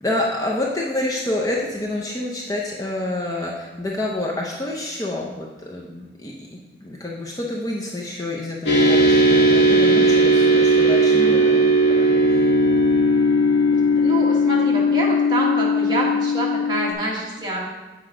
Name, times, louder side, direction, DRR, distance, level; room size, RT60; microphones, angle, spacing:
voice 1, 0.0-11.6 12.2-12.5, left 1 dB, 20° left, -2 dB, 0.6 m, -28 dB
sound 1, 8.7-16.9, equal, 75° left, 1.3 m, -17 dB
voice 2, 11.1-11.4 13.7-17.6, right 1 dB, 25° right, -4 dB, 1.6 m, -27 dB
7.7 x 5.1 x 4.9 m, 1.2 s
head